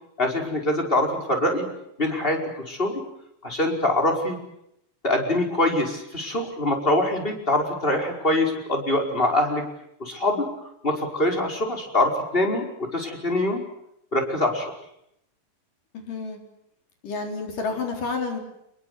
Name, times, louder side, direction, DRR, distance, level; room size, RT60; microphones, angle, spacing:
voice 1, 0.2-1.7 2.0-2.4 2.7-3.0 3.4-4.4 5.0-9.6 10.0-10.5 10.8-13.6 14.1-14.6, left 1 dB, 15° left, 3 dB, 5.1 m, -24 dB
voice 2, 15.9-16.4 17.0-18.4, left 4 dB, 65° left, 4 dB, 5.8 m, -29 dB
27.0 x 22.5 x 8.3 m, 0.78 s
omnidirectional pair, 4.0 m